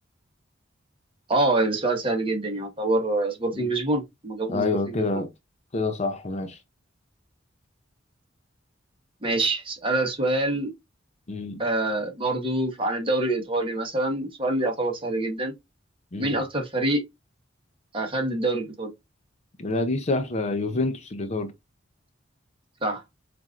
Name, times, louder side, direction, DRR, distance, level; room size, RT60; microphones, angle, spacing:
voice 1, 1.3-5.2 9.2-10.7 11.6-15.5 16.2-17.0 17.9-18.9 22.8-23.0, right 2 dB, 25° right, 1.2 m, -26 dB
voice 2, 4.5-5.3 5.7-6.6 11.3-11.6 16.1-16.4 19.6-21.5, left 3 dB, 35° left, 0.6 m, -27 dB
7.1 x 2.5 x 2.5 m
head